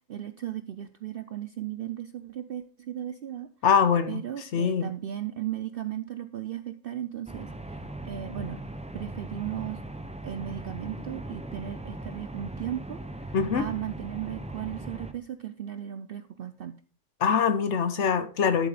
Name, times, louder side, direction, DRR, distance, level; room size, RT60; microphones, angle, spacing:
voice 1, 0.0-3.5 4.1-8.6 8.9-9.8 10.2-16.7, right 11 dB, 60° right, 0.6 m, -36 dB
voice 2, 3.6-4.2 4.5-4.9 13.3-13.7 17.2-18.7, left 6 dB, 65° left, 1.1 m, -23 dB
sound 1, 7.3-15.1, right 1 dB, 10° right, 0.3 m, -39 dB
12.5 x 7.6 x 3.3 m
omnidirectional pair, 1.4 m